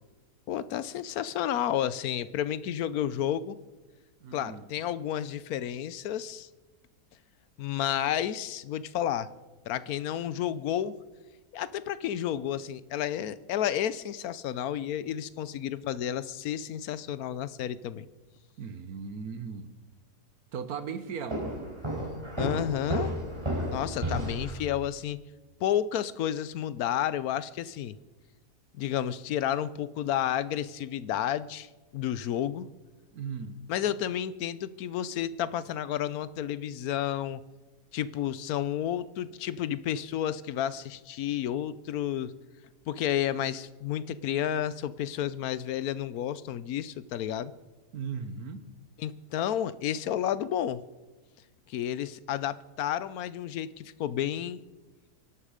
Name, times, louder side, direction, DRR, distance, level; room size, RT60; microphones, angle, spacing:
voice 1, 0.5-3.6 4.3-6.5 7.6-9.3 9.7-10.9 11.5-18.1 22.4-23.1 23.7-25.2 25.6-28.0 28.8-32.7 33.7-37.4 37.9-42.3 42.9-47.5 49.0-50.8 51.7-54.6, left 10 dB, 70° left, 16 dB, 1.1 m, -31 dB
voice 2, 4.2-4.7 18.6-19.7 20.5-21.5 33.1-33.6 47.9-48.7, right 6 dB, 70° right, 11 dB, 1.6 m, -37 dB
Walk footsteps, 21.3-24.6, right 1 dB, 15° right, 4.3 m, -32 dB
24.5 x 11.5 x 5.0 m, 1.2 s
omnidirectional pair, 1.7 m